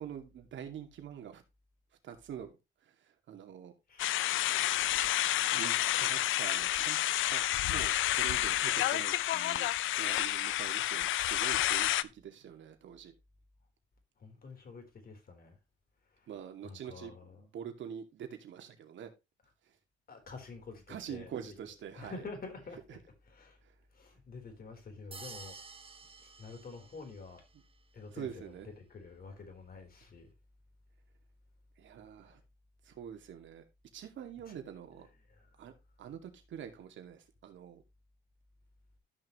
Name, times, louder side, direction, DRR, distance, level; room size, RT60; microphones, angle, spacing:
voice 1, 0.0-1.4 2.0-2.5 2.9-3.0 3.3-3.7 5.5-9.7 10.0-13.1 16.3-19.1 20.9-22.2 22.9-23.0 23.6-23.7 27.5-27.6 28.1-28.7 31.8-32.4 32.8-33.6 33.9-35.1 35.6-35.7 36.0-37.8, right 9 dB, 70° right, 2.3 m, -45 dB
voice 2, 3.9-4.4 14.2-15.6 16.6-17.4 20.1-21.5 21.9-22.8 23.3-23.6 23.9-25.6 26.2-27.4 27.9-28.5 28.9-30.3 34.5-34.6 35.3-35.5, left 4 dB, 50° left, 4.1 m, -48 dB
sound 1, 4.0-12.0, left 14 dB, 80° left, 0.6 m, -30 dB
sound 2, 25.1-27.4, right 4 dB, 25° right, 1.3 m, -50 dB
13.5 x 6.2 x 3.1 m
cardioid pair, 90°, 20 cm